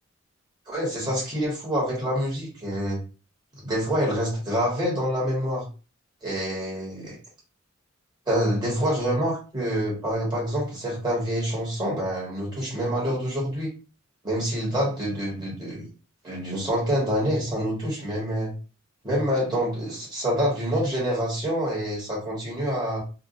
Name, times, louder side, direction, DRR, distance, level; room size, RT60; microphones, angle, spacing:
voice 1, 0.7-3.0 3.5-5.6 6.2-7.2 8.3-13.7 14.2-15.9 16.2-18.5 19.0-23.0, equal, 20° right, -5 dB, 1.4 m, -26 dB
3.4 x 2.3 x 2.6 m, 0.34 s
head